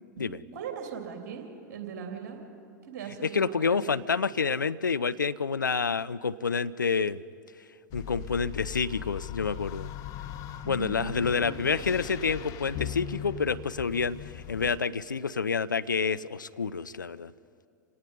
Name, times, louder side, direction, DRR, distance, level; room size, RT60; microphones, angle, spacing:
voice 1, 0.2-2.4 2.9-4.0 10.6-12.0, right 7 dB, 50° right, 3 dB, 3.2 m, -40 dB
voice 2, 3.2-7.2 7.9-9.9 10.7-17.3, left 5 dB, 80° left, 16 dB, 0.4 m, -28 dB
sound 1, 7.9-14.8, left 12 dB, 35° left, 0.9 m, -39 dB
27.5 x 18.0 x 5.4 m, 2.6 s
figure-of-eight pair, 95°, 10 cm